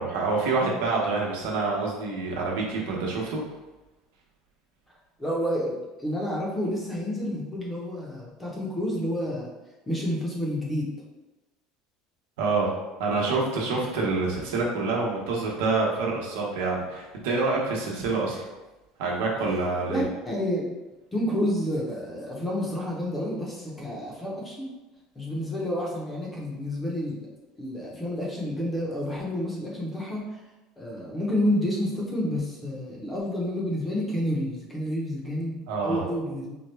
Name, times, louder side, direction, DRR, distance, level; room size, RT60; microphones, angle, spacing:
voice 1, 0.0-3.4 12.4-12.7 13.0-18.4 19.0-20.0 35.7-36.0, right 3 dB, 90° right, -2 dB, 1.0 m, -27 dB
voice 2, 5.2-9.5 9.9-10.9 19.9-20.7 21.1-24.7 25.2-27.3 27.6-30.4 30.8-35.6 35.8-36.6, equal, 10° left, -3 dB, 0.8 m, -29 dB
4.3 x 2.3 x 3.2 m, 1.1 s
cardioid pair, 160°, 0 cm